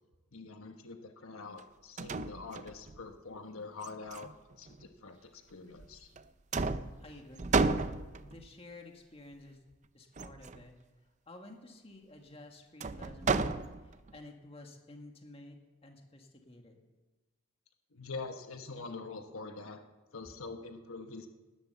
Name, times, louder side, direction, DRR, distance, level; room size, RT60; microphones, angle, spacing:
voice 1, 0.3-4.3 4.6-6.1 17.9-19.8 20.1-21.3, left 3 dB, 80° left, 6 dB, 1.2 m, -44 dB
sound 1, 1.6-1.7 2.0-3.0 3.8-4.8 5.8-6.2 6.5-8.5 10.2-10.6 12.8-14.1, right 4 dB, 35° right, 0.5 m, -33 dB
voice 2, 7.0-7.7 8.1-9.6 9.9-10.8 11.3-16.8, left 2 dB, 25° left, 3 dB, 1.9 m, -52 dB
18.5 x 11.5 x 6.9 m, 1.2 s
head